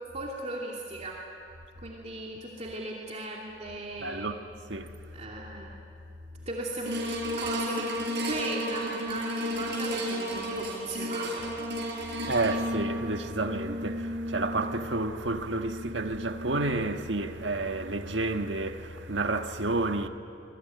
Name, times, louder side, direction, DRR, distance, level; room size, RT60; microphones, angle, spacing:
voice 1, 0.1-1.2 1.8-4.3 5.1-5.7 6.5-7.0 7.4-11.4, right 2 dB, 40° right, 2.7 m, -37 dB
voice 2, 4.0-4.4 4.7-4.9 12.3-20.1, right 2 dB, 85° right, 1.5 m, -30 dB
sound 1, 6.9-17.3 17.8-17.9, equal, 65° right, 6.0 m, -34 dB
27.5 x 21.5 x 9.4 m
head